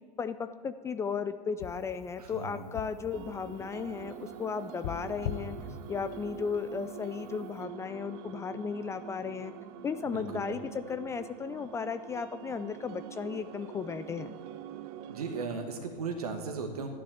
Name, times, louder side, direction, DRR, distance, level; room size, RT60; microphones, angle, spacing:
voice 1, 0.2-5.6 5.9-9.5 9.8-14.3, left 6 dB, 15° left, 11 dB, 0.4 m, -35 dB
sound 1, 1.6-6.8 7.1-7.6, left 8 dB, 50° left, 0.8 m, -43 dB
voice 2, 2.2-2.7 10.0-10.5 15.1-16.9, right 5 dB, 65° right, 4 dB, 1.3 m, -37 dB
sound 2, 3.1-15.5, right 12 dB, 40° right, 0.6 m, -45 dB
12.0 x 10.0 x 7.1 m, 2.2 s
figure-of-eight pair, 90°, 21 cm